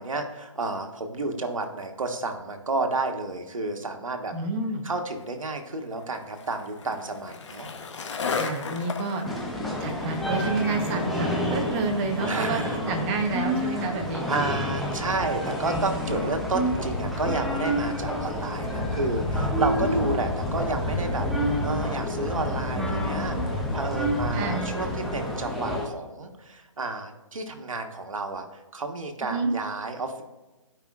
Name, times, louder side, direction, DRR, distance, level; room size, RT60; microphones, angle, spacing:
voice 1, 0.0-4.3 4.8-7.7 9.4-9.7 12.3-12.8 13.7-13.8 14.3-28.4 28.7-30.2, right 3 dB, 80° right, 4 dB, 1.4 m, -31 dB
voice 2, 4.3-4.9 8.3-9.2 9.8-14.3 19.8-20.1 24.3-24.6 29.3-29.5, right 3 dB, 20° right, 4 dB, 0.9 m, -29 dB
Skateboard, 5.1-15.6, left 5 dB, 60° left, 1.1 m, -38 dB
sound 1, 9.2-25.9, equal, ahead, 0.5 m, -28 dB
13.5 x 5.1 x 2.4 m, 1.1 s
hypercardioid pair, 150°, 17 cm